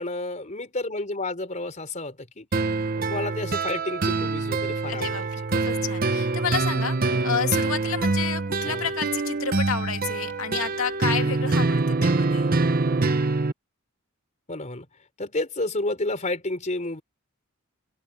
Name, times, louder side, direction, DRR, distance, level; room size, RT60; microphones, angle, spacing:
voice 1, 0.0-2.5 3.0-5.3 7.1-7.3 8.6-8.9 12.9-13.2 14.5-14.9 15.2-17.0, left 2 dB, 35° left, 3.9 m, -31 dB
sound 1, 2.5-13.5, right 3 dB, 40° right, 0.9 m, -25 dB
voice 2, 4.9-12.5, left 7 dB, 70° left, 2.5 m, -30 dB
open air
head